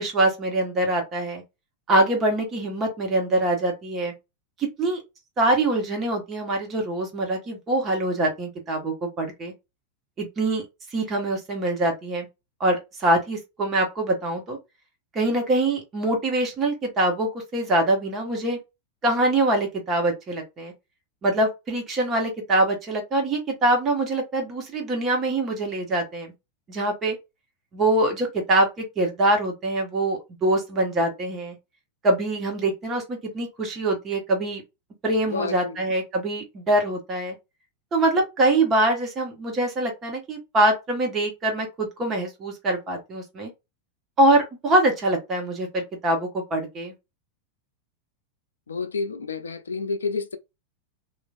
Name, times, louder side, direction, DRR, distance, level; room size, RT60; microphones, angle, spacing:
voice 1, 0.0-1.4 1.9-4.1 4.6-5.0 5.4-9.5 10.2-10.6 10.9-12.3 12.6-14.6 15.1-18.6 19.0-20.7 21.2-26.3 26.7-27.2 27.7-31.6 32.0-34.6 35.0-37.3 37.9-43.5 44.2-46.9, right 1 dB, 25° right, 1.2 m, -24 dB
voice 2, 35.3-35.9 48.7-50.4, left 4 dB, 70° left, 0.4 m, -30 dB
3.0 x 2.4 x 2.4 m
figure-of-eight pair, 90°, 0 cm